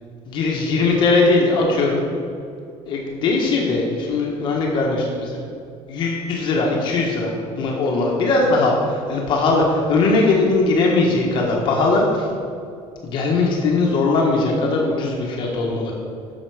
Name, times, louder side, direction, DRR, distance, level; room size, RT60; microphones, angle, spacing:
voice 1, 0.2-2.0 2.8-5.4 5.9-12.3 13.0-15.9, left 3 dB, 40° left, -1 dB, 1.3 m, -20 dB
11.0 x 6.9 x 4.9 m, 2.5 s
cardioid pair, 180°, 12 cm